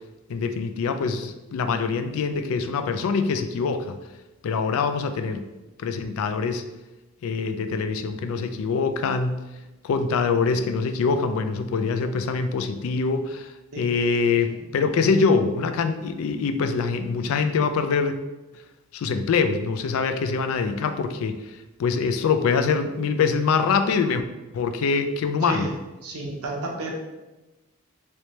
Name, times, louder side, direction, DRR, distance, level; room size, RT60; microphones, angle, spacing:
voice 1, 0.3-4.0 4.4-5.5 5.8-6.6 7.2-9.4 9.8-13.5 13.8-18.2 18.9-21.4 21.8-24.2 24.5-25.7, left 5 dB, 65° left, 9 dB, 0.3 m, -24 dB
voice 2, 14.2-14.6 25.4-25.7 26.0-26.9, right 2 dB, 85° right, 0 dB, 0.8 m, -32 dB
3.1 x 3.1 x 2.9 m, 1.1 s
head